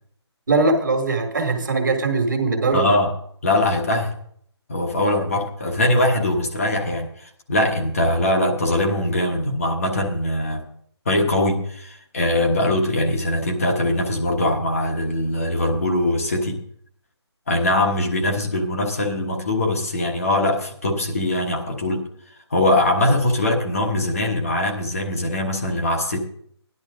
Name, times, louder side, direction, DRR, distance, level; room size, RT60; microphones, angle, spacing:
voice 1, 0.5-3.0, right 3 dB, 45° right, 4 dB, 1.8 m, -21 dB
voice 2, 2.7-3.1 3.4-4.1 4.7-10.6 11.0-16.6 17.5-22.1 22.5-26.2, left 1 dB, 30° left, 2 dB, 1.3 m, -22 dB
14.5 x 11.0 x 3.7 m, 0.63 s
hypercardioid pair, 180°, 15 cm